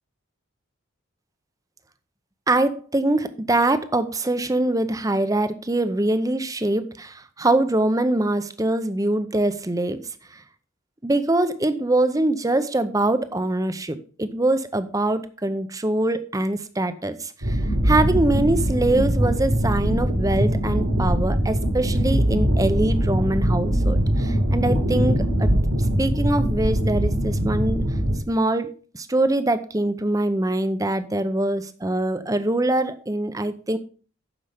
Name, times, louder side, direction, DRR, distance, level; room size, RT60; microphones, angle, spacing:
voice 1, 2.5-10.0 10.3-10.4 11.0-25.5 26.0-27.9 28.3-33.8, right 2 dB, 15° right, 0.7 m, -23 dB
sound 1, 17.4-28.2, equal, 80° right, 3.3 m, -22 dB
9.8 x 6.8 x 5.1 m
head